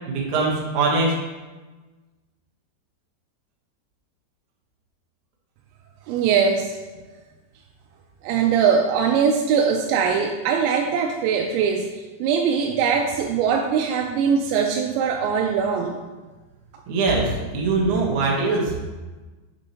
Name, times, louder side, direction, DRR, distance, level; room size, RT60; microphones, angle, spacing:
voice 1, 0.1-1.2 16.9-18.9, right 3 dB, 70° right, -3 dB, 1.9 m, -22 dB
voice 2, 6.1-6.7 8.2-16.0, right 6 dB, 85° right, 2 dB, 2.8 m, -21 dB
8.3 x 6.0 x 2.9 m, 1.2 s
omnidirectional pair, 5.1 m